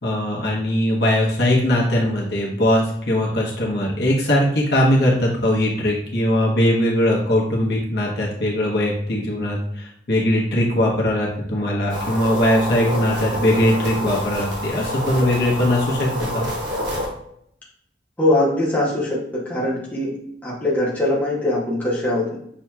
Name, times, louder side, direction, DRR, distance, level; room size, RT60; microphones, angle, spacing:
voice 1, 0.0-16.1 16.3-16.5, left 1 dB, 65° left, -4 dB, 1.1 m, -20 dB
sound 1, 11.9-17.1, left 1 dB, 80° right, 1.3 m, -27 dB
voice 2, 18.2-20.2 20.4-22.4, left 1 dB, 10° left, -6 dB, 0.9 m, -21 dB
6.1 x 2.9 x 2.3 m, 0.70 s
head